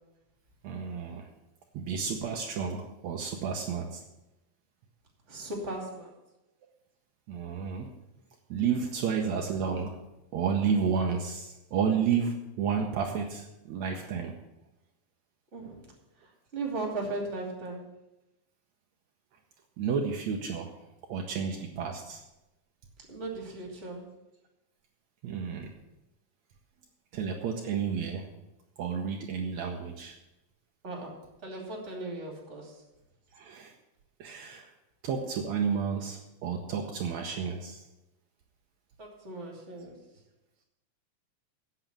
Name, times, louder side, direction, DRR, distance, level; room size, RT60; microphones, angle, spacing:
voice 1, 0.6-1.3 1.7-4.0 7.3-7.9 8.5-10.0 10.3-14.3 19.8-20.7 21.1-22.2 25.2-25.7 27.1-28.3 28.8-30.1 33.3-33.7 34.2-34.7 35.0-37.8, right 6 dB, 70° right, 2 dB, 2.1 m, -31 dB
voice 2, 5.3-6.1 15.5-15.8 16.5-17.9 23.1-24.1 30.8-32.8 39.0-40.0, right 2 dB, 25° right, 0 dB, 2.8 m, -37 dB
8.2 x 8.0 x 8.9 m, 0.95 s
omnidirectional pair, 3.4 m